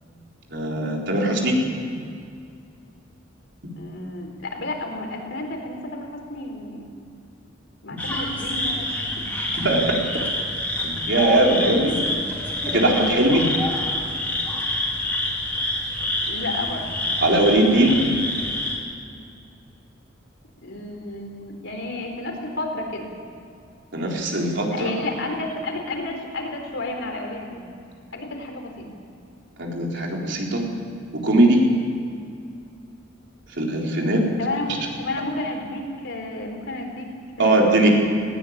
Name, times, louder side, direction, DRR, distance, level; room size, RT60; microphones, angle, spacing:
voice 1, 0.5-1.6 9.6-10.0 10.8-12.0 12.7-13.5 17.2-18.0 23.9-24.9 29.6-30.6 31.2-31.6 33.6-34.2 37.4-37.9, right 1 dB, 65° right, -1 dB, 4.1 m, -20 dB
voice 2, 3.8-6.9 7.8-9.4 16.3-16.9 20.6-23.1 24.7-27.7 28.1-28.9 34.4-37.1 37.4-37.9, left 2 dB, 65° left, 2 dB, 4.1 m, -31 dB
sound 1, 8.0-18.8, left 1 dB, 10° left, 3.9 m, -27 dB
19.5 x 17.0 x 8.8 m, 2.4 s
head